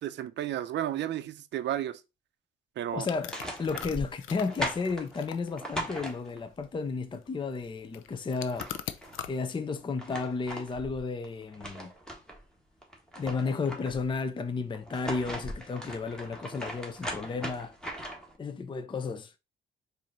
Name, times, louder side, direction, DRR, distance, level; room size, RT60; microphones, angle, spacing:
voice 1, 0.0-2.0 2.8-3.1, right 11 dB, 65° right, 0.5 m, -32 dB
voice 2, 2.9-8.7 9.3-11.9 13.2-17.7 18.4-19.3, left 4 dB, 25° left, 0.5 m, -33 dB
sound 1, 3.0-9.3, left 11 dB, 85° left, 0.5 m, -43 dB
sound 2, 3.1-6.6 8.1-8.2 8.4-9.2 9.8-12.4 12.8-14.1 14.7-18.4, equal, 5° left, 1.5 m, -39 dB
4.7 x 2.7 x 4.2 m
cardioid pair, 90°, 20 cm